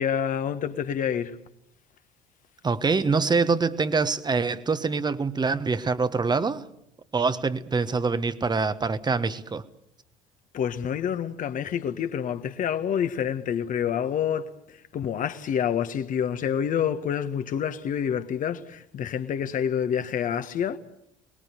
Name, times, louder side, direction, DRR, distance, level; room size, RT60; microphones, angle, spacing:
voice 1, 0.0-1.4 10.5-14.5 14.9-20.8, left 8 dB, 45° left, 1.6 m, -27 dB
voice 2, 2.6-6.6 7.1-9.6, right 4 dB, 20° right, 1.4 m, -25 dB
25.5 x 21.0 x 6.9 m
figure-of-eight pair, 60°, 19 cm